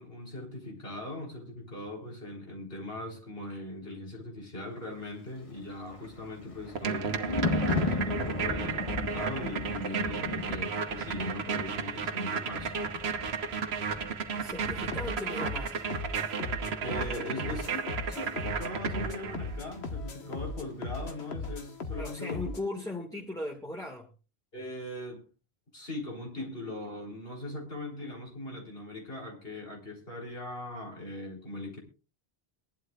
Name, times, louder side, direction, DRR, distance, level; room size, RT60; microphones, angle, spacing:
voice 1, 0.0-12.8 16.8-17.8 18.1-22.5 24.5-25.2 25.7-31.8, left 1 dB, 65° left, 4.3 m, -40 dB
Thunder, 5.5-20.1 20.4-20.6, left 2 dB, 35° left, 1.3 m, -37 dB
sound 1, 6.7-19.5, right 6 dB, 75° right, 1.2 m, -34 dB
voice 2, 14.4-15.8 22.0-24.1, left 2 dB, 5° left, 1.7 m, -38 dB
sound 2, 14.9-22.7, left 3 dB, 85° left, 1.5 m, -38 dB
22.0 x 11.5 x 2.3 m
omnidirectional pair, 1.1 m